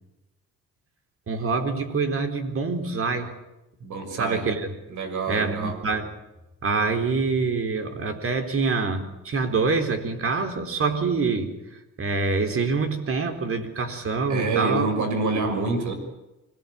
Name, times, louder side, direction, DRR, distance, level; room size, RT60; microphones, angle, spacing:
voice 1, 1.3-3.3 4.2-4.7 5.3-6.1 6.6-11.5 12.0-14.9 15.3-15.5, right 4 dB, 45° right, 6 dB, 4.2 m, -25 dB
voice 2, 3.8-4.5 4.9-5.8 14.3-15.9, right 3 dB, 75° right, 6 dB, 6.1 m, -27 dB
25.0 x 18.5 x 8.9 m, 0.97 s
cardioid pair, 90°, 30 cm